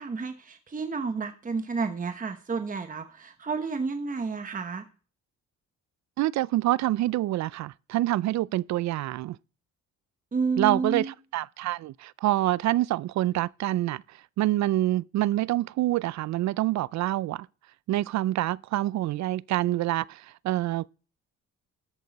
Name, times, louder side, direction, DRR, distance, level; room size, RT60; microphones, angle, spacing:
voice 1, 0.0-4.8 10.3-11.1, right 4 dB, 25° right, 1.0 m, -31 dB
voice 2, 6.2-9.4 10.6-14.0 14.4-17.5 17.9-20.9, right 15 dB, 65° right, 0.4 m, -26 dB
13.0 x 8.5 x 4.1 m
cardioid pair, 90°, 30 cm